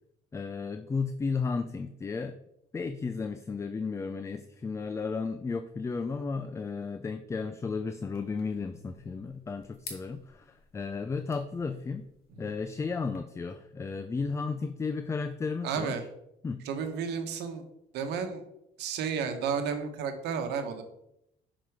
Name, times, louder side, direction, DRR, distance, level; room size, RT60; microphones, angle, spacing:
voice 1, 0.3-2.4 2.7-12.1 12.4-16.0 16.4-16.6, left 4 dB, 15° left, 9 dB, 0.3 m, -34 dB
sound 1, 8.1-13.2, left 4 dB, 65° left, 1.7 m, -52 dB
voice 2, 15.6-16.0 16.6-17.6 17.9-18.4 18.8-20.8, right 6 dB, 85° right, 7 dB, 1.0 m, -32 dB
6.3 x 4.1 x 4.7 m, 0.81 s
cardioid pair, 110°, 17 cm